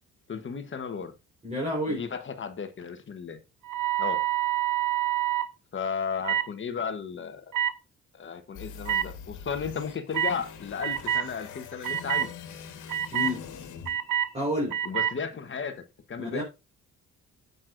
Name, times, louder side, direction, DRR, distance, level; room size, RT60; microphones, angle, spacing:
voice 1, 0.3-1.1 1.9-3.4 4.0-4.2 5.7-7.4 8.1-12.3 14.8-15.8 16.1-16.4, left 6 dB, 40° left, 1.1 m, -34 dB
voice 2, 1.4-2.0 13.1-13.4 14.3-14.8 16.2-16.4, left 1 dB, 20° right, 4.0 m, -29 dB
sound 1, 3.7-5.5 6.2-6.5 7.5-7.7 8.9-9.0 10.1-10.4 10.8-11.3 11.8-12.3 12.9-13.3 13.9-14.3 14.7-15.1, right 11 dB, 85° right, 0.9 m, -27 dB
sound 2, 8.5-14.6, left 7 dB, 85° left, 1.5 m, -44 dB
9.3 x 7.8 x 2.5 m
cardioid pair, 90°, 30 cm